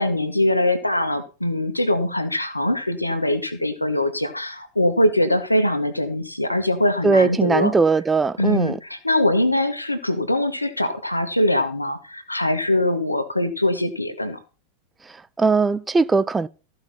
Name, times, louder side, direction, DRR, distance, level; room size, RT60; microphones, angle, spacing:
voice 1, 0.0-7.7 8.4-14.4, left 1 dB, 85° left, 1.6 m, -22 dB
voice 2, 7.0-8.8 15.1-16.5, right 4 dB, 15° right, 0.4 m, -20 dB
14.5 x 5.7 x 5.7 m
figure-of-eight pair, 90°, 0 cm